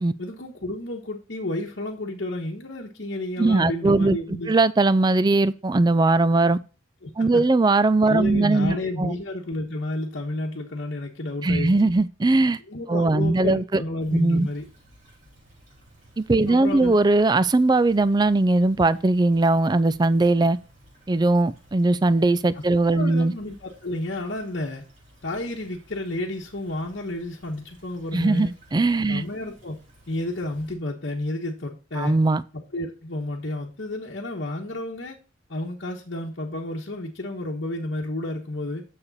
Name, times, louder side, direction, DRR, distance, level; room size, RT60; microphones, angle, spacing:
voice 1, 0.2-4.5 7.0-7.4 8.0-11.7 12.7-14.6 16.5-16.9 22.9-24.8 25.2-28.5 29.1-29.8 30.1-32.2 32.7-35.2 35.5-38.8, left 1 dB, 60° left, 1.2 m, -31 dB
voice 2, 3.4-4.2 4.5-6.6 7.2-9.1 11.4-12.6 12.9-13.8 14.1-14.5 16.2-20.6 21.1-23.3 28.1-29.2 32.0-32.4, right 2 dB, 20° right, 0.4 m, -20 dB
Stream / Trickle dribble, 14.0-30.7, right 1 dB, 40° right, 3.9 m, -55 dB
9.7 x 6.7 x 4.1 m
head